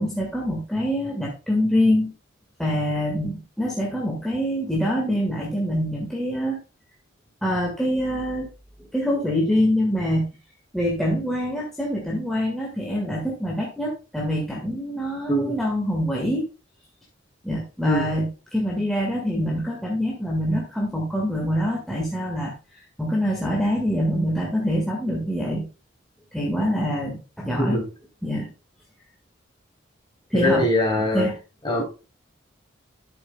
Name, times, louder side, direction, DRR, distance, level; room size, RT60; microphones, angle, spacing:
voice 1, 0.0-2.1 2.6-6.6 7.4-8.5 8.9-10.3 10.7-16.5 17.4-22.5 23.0-25.7 26.3-27.8 28.2-28.5 30.3-30.6 31.0-31.3, equal, ahead, -3 dB, 1.8 m, -25 dB
voice 2, 30.3-31.3 31.6-32.0, left 1 dB, 25° left, 0 dB, 3.7 m, -22 dB
12.5 x 6.9 x 2.3 m, 0.31 s
head